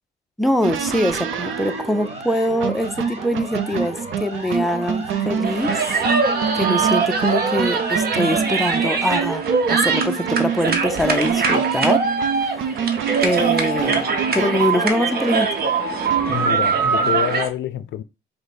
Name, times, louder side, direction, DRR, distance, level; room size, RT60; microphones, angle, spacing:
voice 1, 0.4-5.7 6.5-9.4 9.7-12.9 13.2-15.5, left 1 dB, ahead, 0.5 m, -23 dB
sound 1, 0.6-14.8 16.1-16.7, right 7 dB, 75° right, 0.6 m, -27 dB
Siren, 1.1-9.1, right 1 dB, 30° right, 1.4 m, -36 dB
sound 2, 5.4-17.5, right 4 dB, 50° right, 1.0 m, -22 dB
voice 2, 16.2-18.0, left 11 dB, 65° left, 0.4 m, -27 dB
4.9 x 2.1 x 4.2 m
cardioid pair, 90°, 20 cm